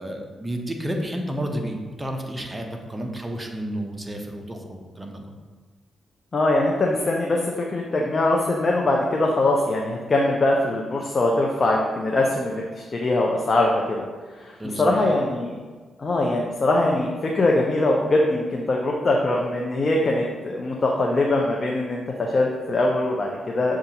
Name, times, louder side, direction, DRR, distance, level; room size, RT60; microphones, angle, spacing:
voice 1, 0.0-5.4 14.6-14.8, equal, 15° right, 2 dB, 0.6 m, -31 dB
voice 2, 6.3-14.0 14.4-15.6 16.0-23.8, left 2 dB, 45° left, -1 dB, 0.5 m, -22 dB
6.6 x 2.4 x 2.8 m, 1.4 s
cardioid pair, 65°, 0 cm